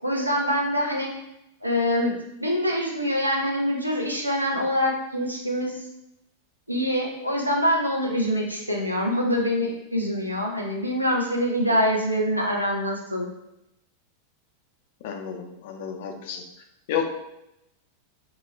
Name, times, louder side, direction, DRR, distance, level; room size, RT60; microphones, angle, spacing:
voice 1, 0.0-1.1 1.6-2.1 2.4-5.8 6.7-13.3, equal, 85° right, -1 dB, 0.5 m, -25 dB
voice 2, 15.0-16.4 16.9-17.1, left 7 dB, 50° left, 4 dB, 0.3 m, -30 dB
2.2 x 2.1 x 3.1 m, 0.84 s
figure-of-eight pair, 90°, 0 cm